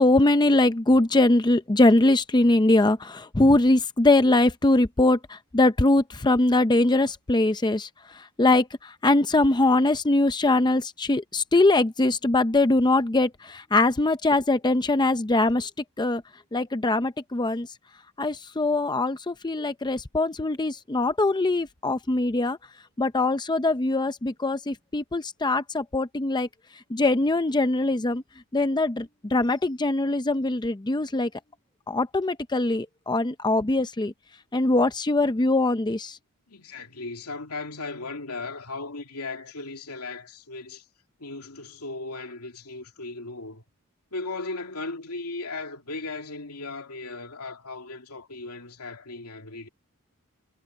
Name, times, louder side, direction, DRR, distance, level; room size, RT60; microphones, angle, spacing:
voice 1, 0.0-7.9 8.1-15.7 16.0-16.2 16.5-17.7 18.2-22.6 23.0-26.5 26.9-28.2 28.5-31.3 31.9-34.1 34.5-36.2, left 2 dB, 20° left, 0.6 m, -22 dB
voice 2, 36.5-40.9 41.2-43.6 44.1-49.7, left 3 dB, 85° left, 2.8 m, -37 dB
head